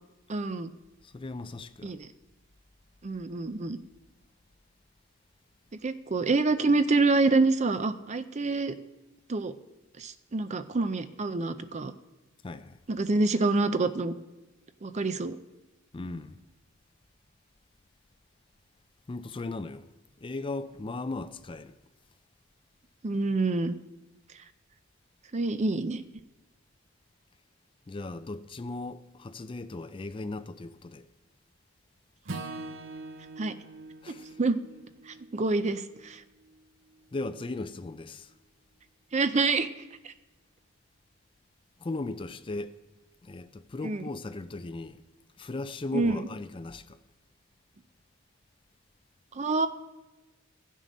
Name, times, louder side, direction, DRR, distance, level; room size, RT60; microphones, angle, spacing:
voice 1, 0.3-0.7 1.8-2.1 3.0-3.8 5.8-8.8 9.3-9.5 10.0-11.9 12.9-14.1 14.8-15.4 23.0-23.8 25.3-26.0 33.4-33.5 34.1-34.6 35.1-36.2 39.1-39.7 40.0-40.1 43.8-44.0 45.9-46.2 49.3-49.7, right 3 dB, 35° right, 0.5 m, -27 dB
voice 2, 1.0-2.0 12.4-12.8 15.9-16.4 19.1-19.9 20.2-21.7 27.9-31.1 34.0-34.4 37.1-38.3 41.8-42.7 43.2-45.0 45.4-47.0, left 2 dB, 25° left, 0.4 m, -37 dB
Acoustic guitar / Strum, 32.2-36.6, right 2 dB, 75° right, 0.9 m, -43 dB
14.5 x 7.4 x 5.3 m
head